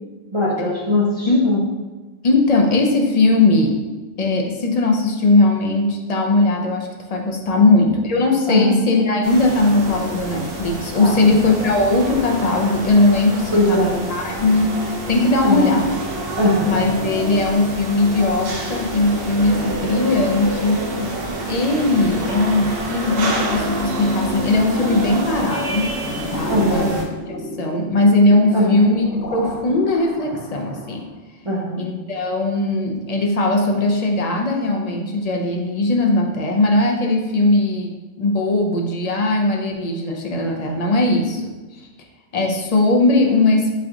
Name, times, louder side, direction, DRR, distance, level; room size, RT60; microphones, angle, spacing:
voice 1, 0.3-1.6 7.5-7.7 8.5-8.8 10.9-11.3 13.5-14.1 15.4-15.7 16.3-16.8 26.5-26.9 28.5-29.2 31.5-31.9, left 1 dB, 35° right, -4 dB, 0.5 m, -20 dB
voice 2, 2.2-3.8 4.2-15.9 16.7-20.9 21.4-25.9 26.3-26.9 27.2-29.1 29.3-31.1 31.8-41.5 42.3-43.7, left 2 dB, 55° left, 1 dB, 0.4 m, -19 dB
sound 1, 9.2-27.0, right 1 dB, 60° right, 0.8 m, -27 dB
sound 2, 26.0-31.1, left 1 dB, 75° left, 1.0 m, -32 dB
3.7 x 3.3 x 3.5 m, 1.2 s
omnidirectional pair, 1.1 m